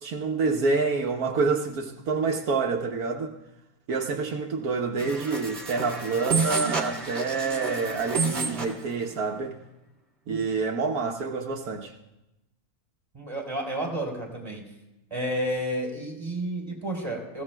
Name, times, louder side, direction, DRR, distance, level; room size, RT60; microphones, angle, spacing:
voice 1, 0.0-3.3 3.9-9.6 10.3-11.9, right 4 dB, 80° right, 1.4 m, -27 dB
sound 1, 5.0-8.8, right 4 dB, 40° right, 1.6 m, -29 dB
voice 2, 13.1-14.6 15.1-17.4, right 1 dB, 15° right, 3.6 m, -31 dB
26.0 x 15.5 x 2.2 m
omnidirectional pair, 1.5 m